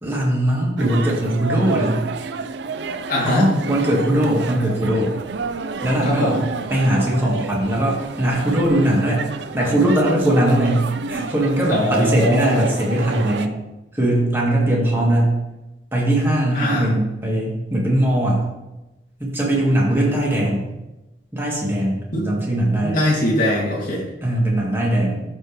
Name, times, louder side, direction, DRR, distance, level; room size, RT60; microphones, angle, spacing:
voice 1, 0.0-2.0 3.2-5.1 5.8-6.4 6.7-9.2 9.5-13.5 13.9-15.3 15.9-18.4 19.2-20.7 21.3-23.0 24.2-25.2, right 1 dB, 15° right, -4 dB, 2.0 m, -20 dB
sound 1, 0.8-13.5, right 4 dB, 70° right, 0.5 m, -30 dB
voice 2, 3.1-3.5 6.0-6.4 11.7-12.7 16.5-16.9 22.1-22.2 22.8-24.0, left 1 dB, 50° left, -5 dB, 2.7 m, -21 dB
13.0 x 4.4 x 3.3 m, 0.99 s
head